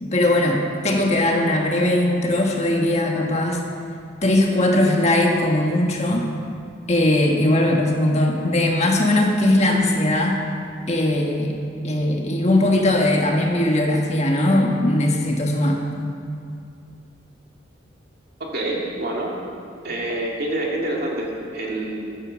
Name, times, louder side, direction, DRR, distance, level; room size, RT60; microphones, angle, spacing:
voice 1, 0.0-3.6 4.2-6.3 6.9-10.4 10.9-11.5 11.8-15.8, left 1 dB, 35° left, 0 dB, 1.5 m, -19 dB
voice 2, 18.4-19.3 19.8-22.1, right 1 dB, 50° right, -2 dB, 2.5 m, -27 dB
14.5 x 9.4 x 6.4 m, 2.4 s
head